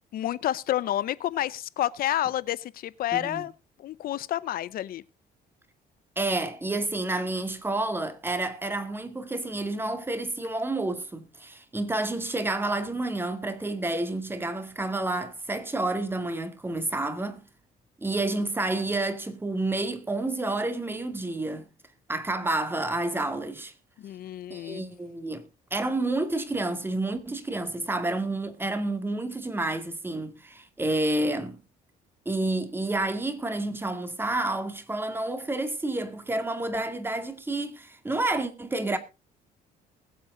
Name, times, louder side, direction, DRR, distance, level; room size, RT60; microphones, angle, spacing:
voice 1, 0.1-3.5 3.8-5.0 24.0-24.8, left 12 dB, 60° left, 0.7 m, -29 dB
voice 2, 3.1-3.4 6.2-17.4 18.0-21.6 22.1-23.7 24.5-25.5 25.7-31.6 32.3-39.0, right 2 dB, 15° right, 2.2 m, -29 dB
20.5 x 7.8 x 3.8 m
cardioid pair, 110°, 17 cm